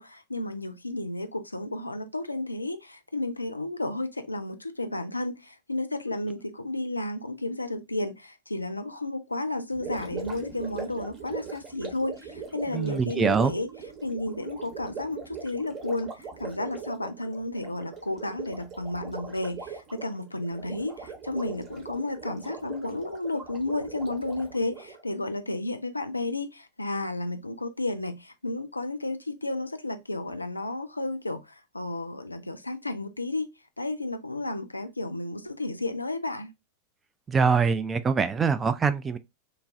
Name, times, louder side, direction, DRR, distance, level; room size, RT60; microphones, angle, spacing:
voice 1, 0.0-13.7 14.0-33.5 33.8-36.5, left 2 dB, 85° left, 0.3 m, -32 dB
Gurgling, 9.7-25.0, right 5 dB, 35° right, 1.0 m, -40 dB
voice 2, 12.7-13.5 37.3-39.2, right 5 dB, 20° right, 0.3 m, -24 dB
3.1 x 2.3 x 2.4 m
figure-of-eight pair, 90°, 0 cm